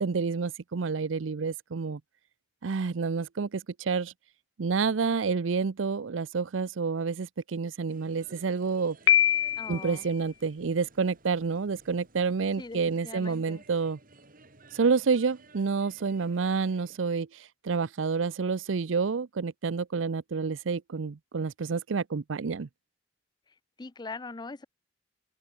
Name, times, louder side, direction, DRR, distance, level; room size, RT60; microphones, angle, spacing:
voice 1, 0.0-2.0 2.6-4.1 4.6-9.0 9.7-14.0 14.7-17.3 17.6-22.7, right 5 dB, 85° right, 0.6 m, -29 dB
sound 1, 7.9-17.0, right 3 dB, 45° right, 3.8 m, -56 dB
Piano, 9.1-10.0, left 11 dB, 75° left, 0.5 m, -23 dB
voice 2, 9.6-10.1 12.6-13.6 23.8-24.6, left 3 dB, 20° left, 0.5 m, -41 dB
head